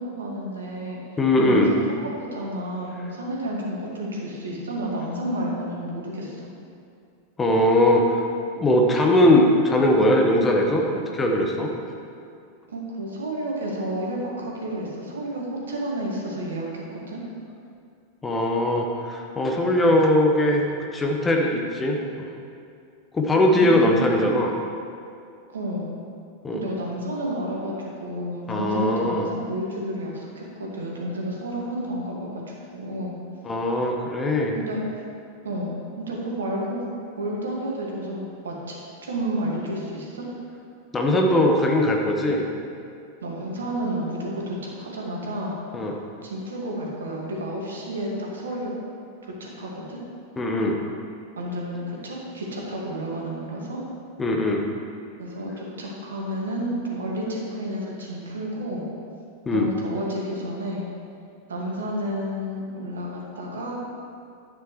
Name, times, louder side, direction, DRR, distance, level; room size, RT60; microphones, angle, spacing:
voice 1, 0.0-1.0 1.4-1.8 2.3-6.5 12.7-17.2 23.5-24.0 25.5-25.9 26.5-33.1 34.5-35.0 35.4-36.9 37.2-38.8 39.0-40.3 43.2-45.6 46.2-48.7 49.2-50.0 51.4-53.8 55.2-58.9 59.5-60.9 61.5-63.7, right 1 dB, 65° right, -2 dB, 1.9 m, -31 dB
voice 2, 1.2-1.7 7.4-8.2 8.6-10.8 11.1-11.7 18.2-20.6 20.9-22.3 23.1-24.5 26.4-26.6 28.5-29.2 33.4-34.5 40.9-42.4 45.7-45.9 50.4-50.8 54.2-54.6 59.4-59.7, left 1 dB, 15° left, 1 dB, 1.2 m, -20 dB
11.0 x 8.8 x 3.2 m, 2.4 s
figure-of-eight pair, 90°, 0 cm